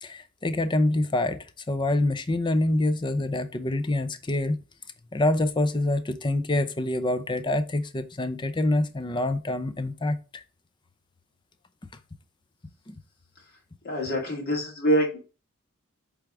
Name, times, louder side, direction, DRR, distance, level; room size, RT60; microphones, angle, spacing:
voice 1, 0.0-4.6 5.1-10.4 12.9-13.0, left 1 dB, 20° left, 0.5 m, -26 dB
voice 2, 13.8-15.2, equal, 45° left, 2.2 m, -25 dB
8.0 x 3.5 x 3.6 m
head